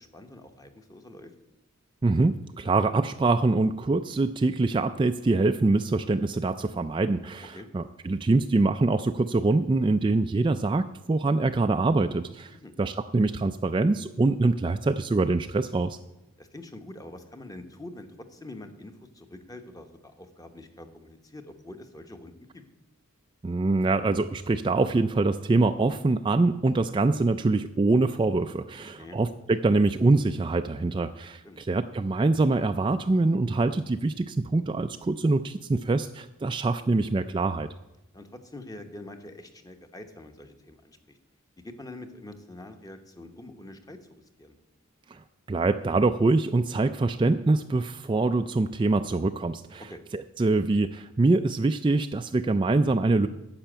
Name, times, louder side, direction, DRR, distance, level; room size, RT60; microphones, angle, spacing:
voice 1, 0.0-1.3 7.5-7.7 12.5-12.7 16.4-22.6 28.8-29.2 31.4-31.6 38.1-41.2 41.6-44.5 49.9-50.0, left 1 dB, 15° left, 7 dB, 1.0 m, -45 dB
voice 2, 2.0-16.0 23.4-37.7 45.1-45.2 45.5-49.8 50.1-53.3, right 3 dB, 25° right, 8 dB, 0.3 m, -24 dB
10.0 x 7.0 x 8.8 m, 0.95 s
head